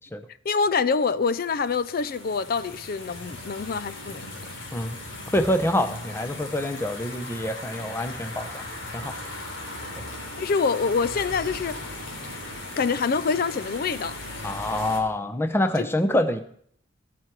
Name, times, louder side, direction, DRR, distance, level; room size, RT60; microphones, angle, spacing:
voice 1, 0.5-4.3 10.4-11.8 12.8-14.2 15.8-15.9, left 5 dB, 50° left, 0.4 m, -25 dB
sound 1, 1.4-15.0, left 2 dB, 75° left, 3.3 m, -38 dB
voice 2, 5.3-8.7 8.9-9.2 10.0-10.1 14.4-16.4, left 1 dB, 10° left, 0.7 m, -26 dB
17.5 x 6.0 x 4.6 m
head